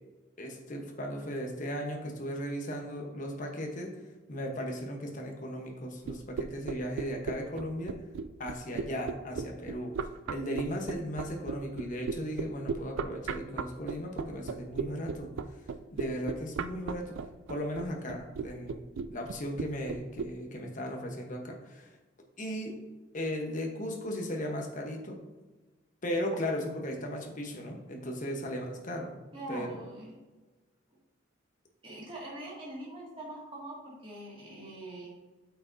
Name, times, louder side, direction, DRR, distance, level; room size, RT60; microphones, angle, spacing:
voice 1, 0.4-3.9 4.3-7.9 8.4-9.9 10.3-15.3 15.9-17.1 17.5-18.8 19.1-21.9 22.4-22.7 23.1-25.2 26.0-29.2 29.5-29.8, equal, 40° left, 1 dB, 1.1 m, -36 dB
sound 1, 6.1-20.3, right 5 dB, 75° right, 0.4 m, -35 dB
voice 2, 29.3-30.2 31.8-35.1, right 1 dB, 25° right, -6 dB, 2.1 m, -43 dB
8.4 x 6.1 x 2.7 m, 1.2 s
head